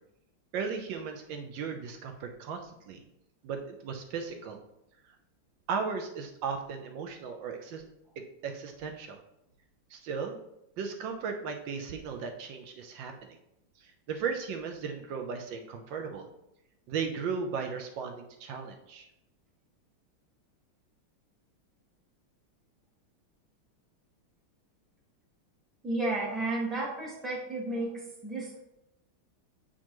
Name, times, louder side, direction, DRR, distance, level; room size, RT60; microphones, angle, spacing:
voice 1, 0.5-3.0 3.4-4.6 5.7-7.8 8.4-9.2 9.9-10.4 10.8-13.4 13.8-16.3 16.9-19.1, right 5 dB, 70° right, 5 dB, 1.3 m, -36 dB
voice 2, 25.8-28.6, right 2 dB, ahead, -4 dB, 1.1 m, -32 dB
8.4 x 4.4 x 3.0 m, 0.84 s
omnidirectional pair, 2.3 m